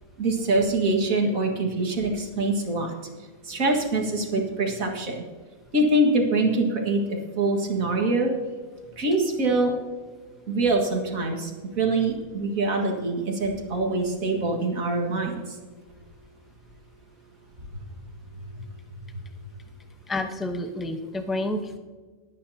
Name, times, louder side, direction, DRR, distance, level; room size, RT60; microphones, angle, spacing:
voice 1, 0.2-2.9 3.5-5.2 5.7-8.3 9.0-9.7 10.5-11.5 11.8-15.4 17.7-17.8, right 2 dB, 70° right, 2 dB, 2.3 m, -24 dB
voice 2, 20.1-21.8, left 1 dB, ahead, 5 dB, 0.7 m, -29 dB
19.5 x 9.6 x 2.8 m, 1.4 s
omnidirectional pair, 1.5 m